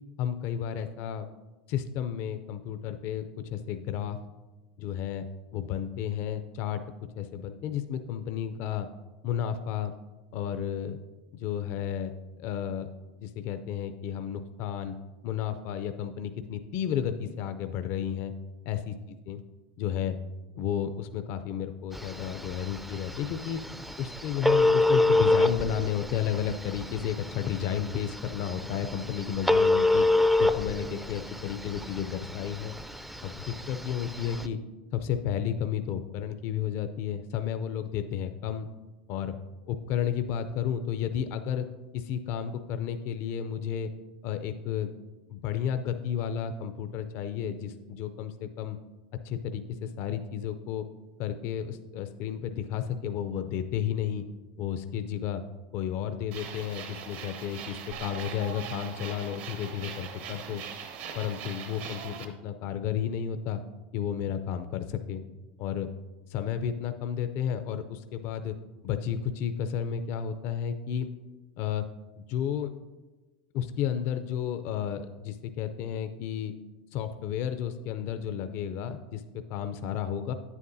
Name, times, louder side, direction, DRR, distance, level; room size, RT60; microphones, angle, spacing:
voice 1, 0.2-1.3 1.7-4.2 4.8-5.3 5.5-6.8 7.2-8.9 9.2-9.9 10.3-11.0 11.4-12.9 13.2-15.0 15.2-18.3 18.7-19.0 19.3-19.4 19.8-20.2 20.6-23.6 24.0-30.0 30.4-32.7 33.2-34.6 34.9-38.7 39.1-39.3 39.7-41.7 41.9-43.9 44.2-44.9 45.3-48.8 49.2-50.9 51.2-54.2 54.6-55.4 55.7-60.6 61.1-63.6 63.9-65.2 65.6-65.9 66.3-68.6 68.8-71.1 71.6-71.9 72.2-72.7 73.5-76.5 76.9-80.3, left 9 dB, 55° left, 9 dB, 0.5 m, -32 dB
Telephone, 21.9-34.5, left 2 dB, 5° right, 0.4 m, -27 dB
sound 1, 56.3-62.2, right 7 dB, 65° right, 1.0 m, -41 dB
9.4 x 8.3 x 2.7 m, 1.2 s
supercardioid pair, 115°, 5 cm